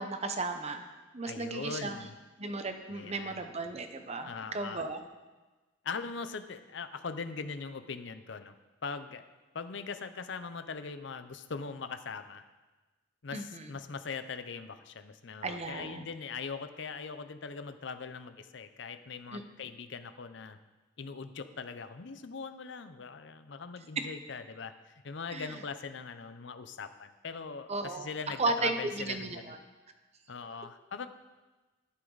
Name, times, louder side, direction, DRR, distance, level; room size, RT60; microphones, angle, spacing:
voice 1, 0.0-2.1 2.4-5.1 13.3-13.7 15.4-16.1 19.3-19.4 24.0-24.1 25.3-25.6 27.7-28.1 28.4-29.6, right 3 dB, 35° right, 7 dB, 0.9 m, -35 dB
voice 2, 1.3-2.1 2.9-3.4 4.2-4.8 5.8-8.5 8.8-9.2 9.5-12.5 13.2-20.6 21.0-29.4 30.3-31.1, left 5 dB, 65° left, 10 dB, 0.7 m, -41 dB
12.5 x 11.0 x 4.0 m, 1.2 s
head